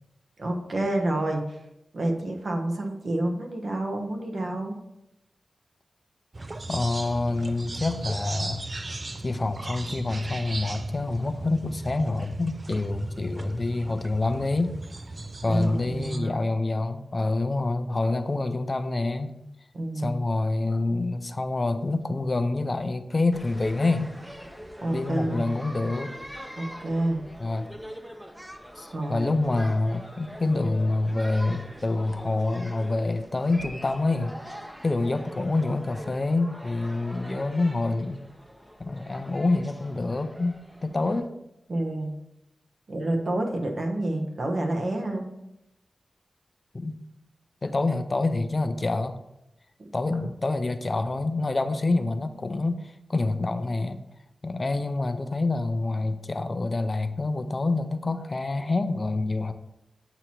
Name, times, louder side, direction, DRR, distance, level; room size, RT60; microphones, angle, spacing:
voice 1, 0.4-1.6 1.9-4.8 15.5-16.5 19.7-20.2 24.8-25.5 26.6-27.2 28.9-29.4 41.7-42.1 42.9-45.3, right 1 dB, 60° right, 2 dB, 1.0 m, -28 dB
sound 1, 6.3-16.2, right 2 dB, 40° right, 0.4 m, -36 dB
voice 2, 6.7-8.6 9.2-14.8 15.4-19.4 20.0-24.2 24.9-26.1 27.4-27.7 28.8-34.3 34.8-38.2 38.8-41.3 46.7-47.0 47.6-49.2 49.9-54.0 54.4-59.5, left 2 dB, 40° left, 10 dB, 0.4 m, -27 dB
sound 2, 23.3-41.2, equal, 5° right, 0.6 m, -44 dB
7.9 x 2.9 x 4.3 m, 0.87 s
cardioid pair, 60°, 0 cm